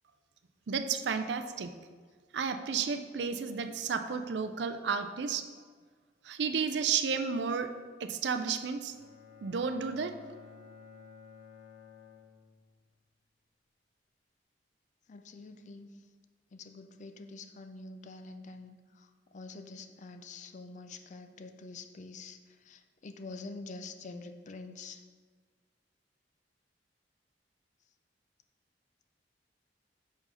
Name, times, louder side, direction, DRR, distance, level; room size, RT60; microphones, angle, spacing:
voice 1, 0.7-1.7 2.3-5.5 6.3-7.7 8.0-8.9 9.4-10.1, right 6 dB, 70° right, 9 dB, 0.4 m, -32 dB
Bowed string instrument, 8.9-13.0, left 6 dB, 75° left, 1.2 m, -54 dB
voice 2, 15.1-16.0 16.5-19.1 19.3-22.4 22.6-25.0, left 3 dB, 45° left, 8 dB, 0.4 m, -46 dB
5.2 x 4.8 x 5.5 m, 1.6 s
head